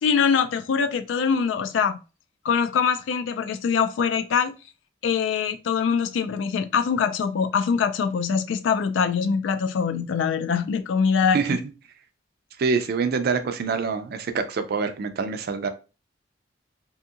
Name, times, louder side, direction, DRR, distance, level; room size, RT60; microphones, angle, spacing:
voice 1, 0.0-2.0 2.4-4.5 5.0-11.6, left 6 dB, 80° left, 0.3 m, -23 dB
voice 2, 12.6-15.7, right 5 dB, 55° right, 0.4 m, -25 dB
2.7 x 2.7 x 2.3 m
head